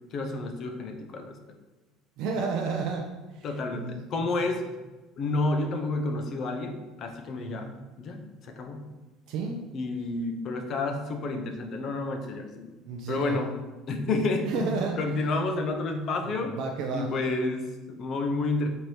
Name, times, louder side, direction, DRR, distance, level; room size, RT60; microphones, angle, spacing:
voice 1, 0.1-1.4 3.4-4.6 5.2-7.7 8.0-9.0 9.7-12.7 13.1-13.5 13.9-16.5 16.9-18.7, left 3 dB, 35° left, 5 dB, 0.4 m, -30 dB
voice 2, 2.2-3.5 3.7-4.0 7.4-7.7 9.3-9.6 12.8-13.4 14.5-15.0 16.4-17.1, right 4 dB, 60° right, 1 dB, 0.4 m, -31 dB
4.3 x 2.7 x 3.2 m, 1.1 s
cardioid pair, 165°, 0 cm